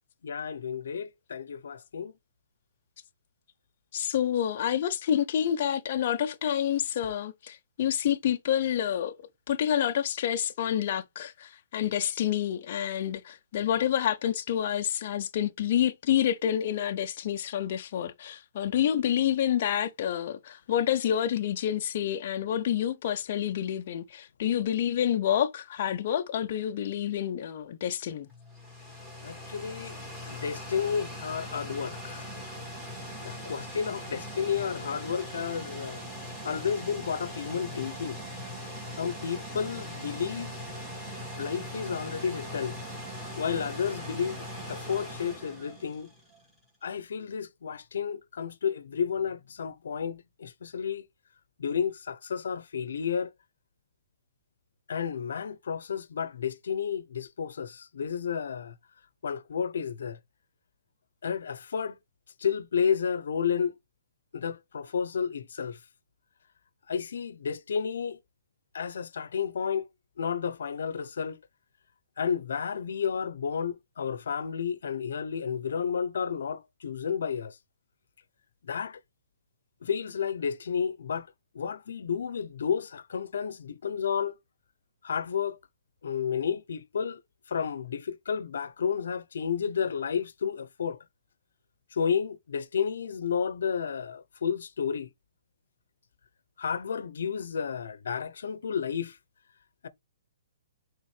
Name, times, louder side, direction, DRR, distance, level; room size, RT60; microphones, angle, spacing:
voice 1, 0.2-2.1 29.2-30.0 30.2-32.3 33.2-36.0 36.4-38.2 39.0-40.5 41.4-42.7 43.3-46.1 46.8-51.0 51.6-53.3 54.9-58.7 59.2-60.2 61.2-62.0 62.4-63.7 64.3-65.8 66.9-68.2 68.7-69.9 70.2-71.4 72.2-77.5 78.6-79.0 79.8-81.3 81.5-84.3 85.0-85.6 86.0-87.2 87.5-91.0 91.9-95.1 96.6-99.2, left 7 dB, 65° left, 0.7 m, -31 dB
voice 2, 3.9-9.2 9.5-28.3, left 10 dB, 35° left, 0.6 m, -28 dB
sound 1, 28.3-46.4, equal, 5° right, 2.2 m, -40 dB
8.3 x 3.7 x 3.3 m
hypercardioid pair, 170°, 0 cm